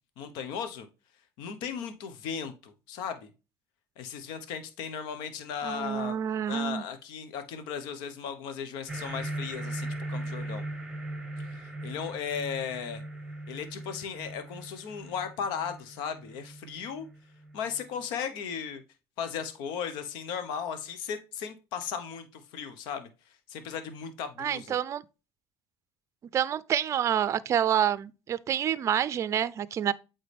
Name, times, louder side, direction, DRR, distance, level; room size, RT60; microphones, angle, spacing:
voice 1, 0.2-0.9 1.4-3.3 4.0-6.2 6.5-10.6 11.4-13.0 13.5-17.1 17.5-18.8 19.2-24.8, left 7 dB, 75° left, 1.0 m, -36 dB
voice 2, 5.6-6.8 24.4-25.0 26.3-29.9, right 9 dB, 40° right, 0.5 m, -28 dB
sound 1, 8.9-17.8, right 1 dB, 5° right, 1.3 m, -39 dB
8.3 x 3.9 x 3.4 m
supercardioid pair, 110°, 8 cm